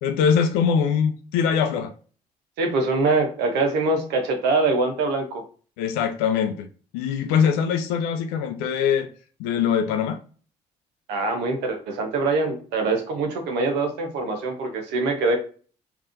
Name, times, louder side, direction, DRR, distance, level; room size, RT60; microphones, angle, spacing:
voice 1, 0.0-1.9 5.8-6.7 6.9-9.1 9.4-10.2, left 7 dB, 70° left, 0.5 m, -22 dB
voice 2, 2.6-5.4 11.1-15.4, right 3 dB, 65° right, 0.8 m, -23 dB
3.5 x 2.5 x 2.5 m
figure-of-eight pair, 45°, 19 cm